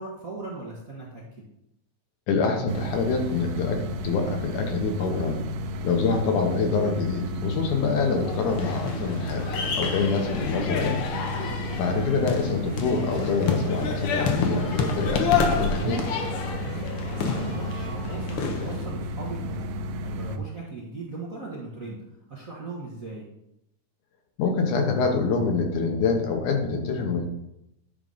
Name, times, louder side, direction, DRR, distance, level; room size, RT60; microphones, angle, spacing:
voice 1, 0.0-1.4 16.6-22.0 22.3-23.2, right 3 dB, 50° right, -5 dB, 1.0 m, -38 dB
voice 2, 2.3-5.4 5.8-9.5 9.7-11.0 11.8-16.0 24.4-27.3, left 4 dB, 85° left, 3 dB, 2.6 m, -26 dB
sound 1, 2.7-20.4, equal, 80° right, 1.8 m, -33 dB
sound 2, 8.2-18.9, left 5 dB, 65° left, 1.4 m, -29 dB
violin end, 15.6-18.3, right 3 dB, 20° left, 2.7 m, -48 dB
9.9 x 3.8 x 5.5 m, 0.82 s
omnidirectional pair, 3.5 m